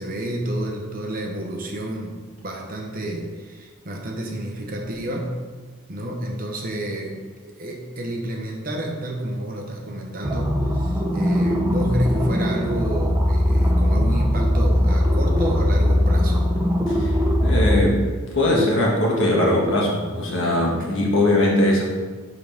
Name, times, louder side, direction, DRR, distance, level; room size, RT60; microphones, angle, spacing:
voice 1, 0.0-2.2 2.4-5.3 5.9-16.5 20.8-21.0, right 1 dB, 40° right, 0 dB, 1.0 m, -29 dB
sound 1, 10.2-17.8, left 1 dB, 10° right, 0.6 m, -20 dB
voice 2, 17.4-18.0 18.3-21.8, left 1 dB, 60° left, -3 dB, 1.6 m, -20 dB
11.0 x 3.9 x 3.6 m, 1.4 s
head